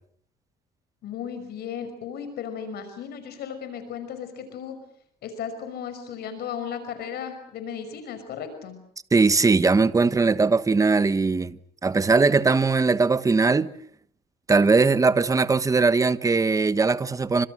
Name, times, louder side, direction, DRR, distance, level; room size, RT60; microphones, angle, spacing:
voice 1, 1.0-4.8 5.2-8.8, left 7 dB, 70° left, 5.6 m, -35 dB
voice 2, 9.1-13.7 14.5-17.5, right 4 dB, 20° right, 1.3 m, -20 dB
29.5 x 26.0 x 6.4 m
cardioid pair, 110°, 17 cm